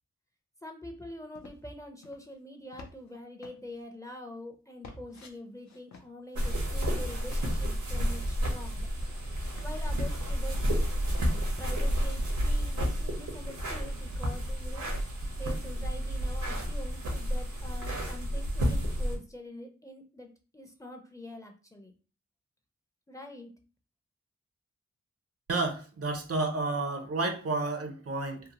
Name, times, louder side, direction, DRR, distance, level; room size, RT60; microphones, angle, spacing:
voice 1, 0.6-8.9 9.6-10.7 11.6-14.9 15.4-21.9 23.1-23.5, left 1 dB, 10° left, 0.5 m, -45 dB
sound 1, 1.3-1.7 2.0-2.3 2.7-3.1 3.4-3.8 4.8-5.3 5.7-6.6 7.0-7.5 8.7-8.8 9.0-9.7 10.1-11.4 11.7-12.0, left 4 dB, 70° left, 0.6 m, -52 dB
sound 2, 6.4-19.2, equal, 80° right, 0.9 m, -31 dB
voice 2, 25.5-28.4, right 3 dB, 55° right, 0.6 m, -31 dB
2.7 x 2.0 x 2.8 m
cardioid pair, 50°, 29 cm